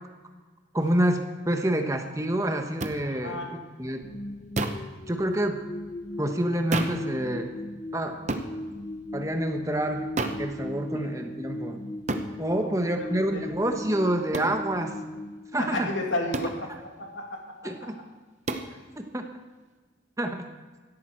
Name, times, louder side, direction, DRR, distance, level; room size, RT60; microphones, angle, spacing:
voice 1, 0.7-4.1 5.1-5.6 6.2-7.5 7.9-8.2 9.1-10.1 10.4-11.8 12.4-15.0 15.5-15.9 17.6-17.9 19.0-19.2 20.2-20.4, right 1 dB, 15° right, 5 dB, 1.1 m, -27 dB
sound 1, 2.8-3.0 4.6-4.9 6.7-7.1 8.3-8.5 10.2-10.5 12.1-12.3 14.3-14.6 16.3-16.6 18.5-18.7, right 2 dB, 35° right, 0.9 m, -29 dB
voice 2, 3.0-3.5 10.9-11.1 12.6-13.4 15.6-18.1 18.7-18.8, left 2 dB, 85° left, 2 dB, 2.4 m, -34 dB
sound 2, 4.0-16.2, left 1 dB, 30° left, 0.5 m, -38 dB
17.0 x 13.0 x 4.6 m, 1.3 s
head